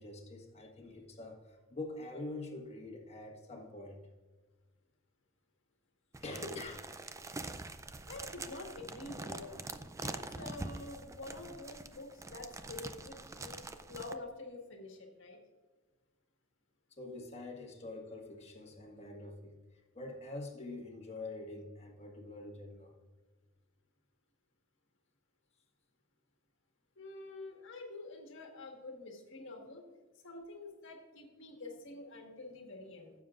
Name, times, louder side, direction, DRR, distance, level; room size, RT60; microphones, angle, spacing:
voice 1, 0.0-4.1 6.2-7.1 7.4-7.6 16.9-23.0, left 2 dB, 30° left, 1 dB, 1.6 m, -45 dB
sound 1, 6.1-14.1, right 3 dB, 15° right, 0.4 m, -45 dB
voice 2, 8.1-9.6 10.0-13.6 13.9-15.4 27.0-29.8 30.2-33.1, left 2 dB, 60° left, 2 dB, 1.6 m, -47 dB
15.0 x 7.2 x 2.5 m, 1.3 s
head